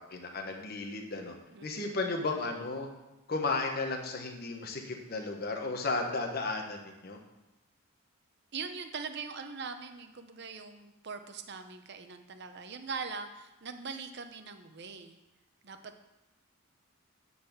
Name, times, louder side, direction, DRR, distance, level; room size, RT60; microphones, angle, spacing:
voice 1, 0.0-1.3 1.6-2.9 3.3-7.2, left 3 dB, 50° left, 2 dB, 1.1 m, -34 dB
voice 2, 1.5-1.9 8.5-15.2 15.6-15.9, right 5 dB, 55° right, 8 dB, 0.7 m, -42 dB
9.7 x 4.1 x 7.1 m, 0.99 s
head